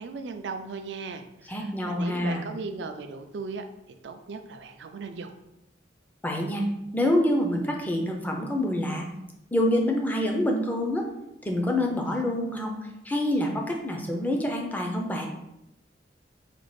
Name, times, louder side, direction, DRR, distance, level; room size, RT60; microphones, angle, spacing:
voice 1, 0.0-3.6 4.0-5.3, right 4 dB, 65° right, 7 dB, 0.4 m, -37 dB
voice 2, 1.5-2.4 6.2-6.6 6.9-9.1 9.5-11.0 11.4-12.8 13.0-15.3, left 1 dB, 10° left, 1 dB, 0.5 m, -26 dB
5.1 x 2.4 x 3.1 m, 0.87 s
head